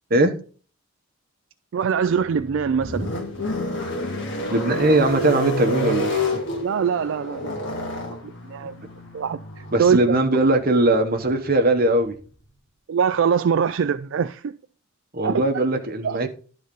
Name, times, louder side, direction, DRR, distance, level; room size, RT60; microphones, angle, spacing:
voice 1, 1.7-3.1 6.6-8.7 9.1-10.1 12.9-14.5 15.2-15.4 16.0-16.3, right 7 dB, 65° right, 0.3 m, -23 dB
sound 1, 2.0-12.3, left 1 dB, 55° left, 1.8 m, -30 dB
voice 2, 4.5-6.4 9.7-12.1 15.1-16.3, right 2 dB, 45° right, 1.1 m, -20 dB
11.5 x 4.0 x 5.2 m
head